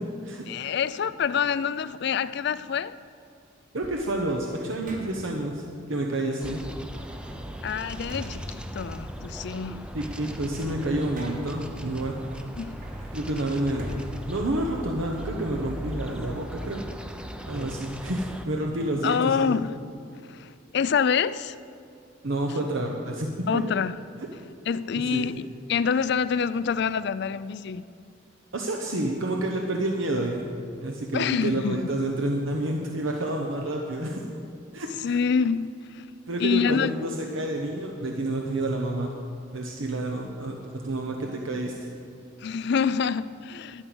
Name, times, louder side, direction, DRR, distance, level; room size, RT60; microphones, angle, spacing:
voice 1, 0.5-3.0 7.6-9.9 12.6-12.8 19.0-19.8 20.3-21.6 23.5-24.0 24.7-27.9 31.1-31.8 35.0-36.0 36.4-36.9 42.4-43.8, left 6 dB, 55° left, 16 dB, 0.4 m, -26 dB
voice 2, 3.7-5.6 5.9-6.6 9.9-12.2 13.1-16.8 17.5-19.5 22.2-23.6 24.9-25.3 28.5-30.4 30.8-34.2 34.7-34.9 36.3-39.1 39.5-40.6 40.8-41.9, right 1 dB, 80° right, 1 dB, 1.0 m, -29 dB
sound 1, 3.8-5.5 6.9-9.4 9.7-11.7 12.2-15.2, equal, 45° right, 1.6 m, -44 dB
sound 2, 6.4-18.4, equal, 5° right, 0.5 m, -38 dB
12.0 x 9.7 x 6.2 m, 2.6 s
head